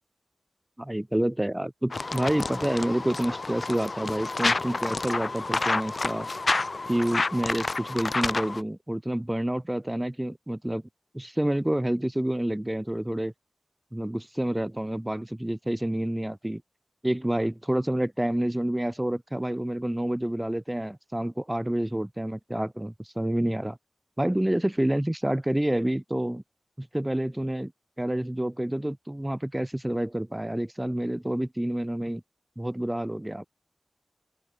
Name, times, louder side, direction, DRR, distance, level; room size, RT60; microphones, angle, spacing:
voice 1, 0.8-6.3 6.9-10.8 11.1-13.3 13.9-16.6 17.0-23.8 24.2-26.4 26.8-27.7 28.0-32.2 32.6-33.4, right 1 dB, 15° right, 1.2 m, -28 dB
sound 1, 1.9-8.6, left 3 dB, 60° left, 0.4 m, -29 dB
open air
wide cardioid pair, 60°, 0 cm